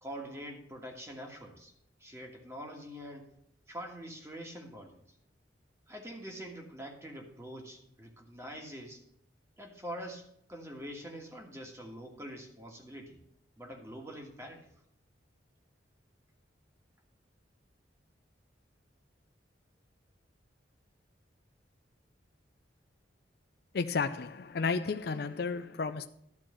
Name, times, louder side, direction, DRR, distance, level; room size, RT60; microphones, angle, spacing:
voice 1, 0.0-1.7 2.0-3.3 3.7-5.0 5.9-9.0 9.6-13.2 13.6-14.7, equal, 15° right, 1.5 m, -45 dB
voice 2, 23.7-26.1, left 4 dB, 55° left, 0.4 m, -32 dB
12.0 x 4.5 x 7.6 m
head